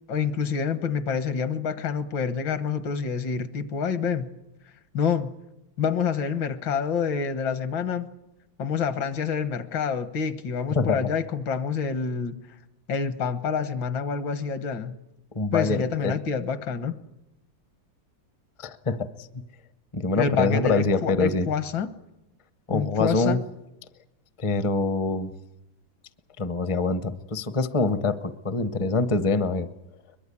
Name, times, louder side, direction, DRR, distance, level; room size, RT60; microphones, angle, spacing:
voice 1, 0.1-4.3 4.9-5.4 5.8-8.1 8.6-12.4 12.9-15.0 15.5-17.0 20.2-21.9 22.7-23.4, left 6 dB, 70° left, 11 dB, 1.9 m, -27 dB
voice 2, 10.7-11.1 15.3-16.1 18.6-19.3 19.9-21.5 22.7-23.4 24.4-25.3 26.4-29.7, left 3 dB, 35° left, 12 dB, 0.5 m, -25 dB
22.5 x 22.0 x 8.5 m, 0.91 s
omnidirectional pair, 2.1 m